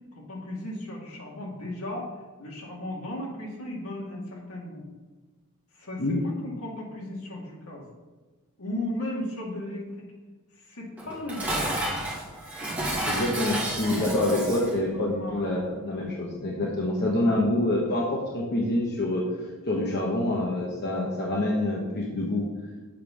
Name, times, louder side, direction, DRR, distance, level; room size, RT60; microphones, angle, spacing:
voice 1, 0.1-2.1 2.4-4.9 5.7-7.8 8.6-10.1 10.5-11.7 14.9-15.5, left 1 dB, 75° left, -2 dB, 2.3 m, -36 dB
Dishes pots and pans, 11.0-14.8, right 1 dB, 5° right, 2.0 m, -31 dB
voice 2, 13.0-19.2 19.7-22.5, left 1 dB, 50° left, -3 dB, 1.2 m, -26 dB
7.5 x 5.4 x 6.2 m, 1.3 s
head